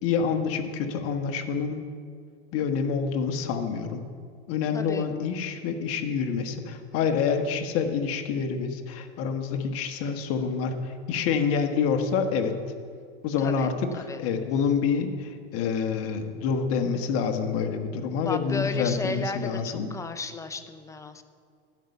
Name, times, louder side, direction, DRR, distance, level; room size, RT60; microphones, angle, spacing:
voice 1, 0.0-1.8 2.5-4.0 4.5-12.5 13.2-13.7 14.2-19.9, left 6 dB, 45° left, 6 dB, 1.2 m, -27 dB
voice 2, 4.7-5.1 13.4-14.2 18.2-21.2, left 3 dB, 10° left, 9 dB, 0.5 m, -34 dB
12.0 x 5.4 x 8.3 m, 2.1 s
hypercardioid pair, 115°, 31 cm